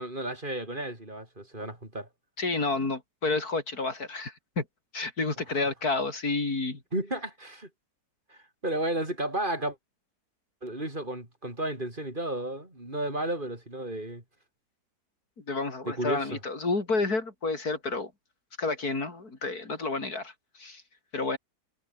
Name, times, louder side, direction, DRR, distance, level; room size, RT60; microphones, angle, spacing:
voice 1, 0.0-2.1 6.9-7.7 8.3-9.8 10.6-14.2 15.9-16.4, right 1 dB, 30° right, 6.0 m, -33 dB
voice 2, 2.4-4.6 4.9-6.8 15.4-18.1 18.6-20.8 21.1-21.4, left 3 dB, 65° left, 4.7 m, -30 dB
omnidirectional pair, 1.8 m